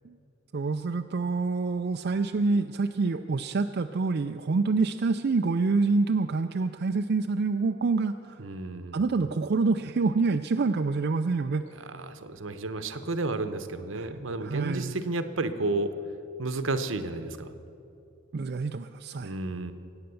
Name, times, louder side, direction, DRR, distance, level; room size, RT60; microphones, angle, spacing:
voice 1, 0.5-8.4 8.9-11.7 14.0-15.0 18.3-19.3, right 3 dB, 55° right, 6 dB, 0.4 m, -27 dB
voice 2, 8.4-9.0 11.9-15.9 16.4-17.5 19.2-19.7, right 2 dB, 75° right, 10 dB, 1.0 m, -32 dB
23.0 x 8.8 x 7.0 m, 2.7 s
head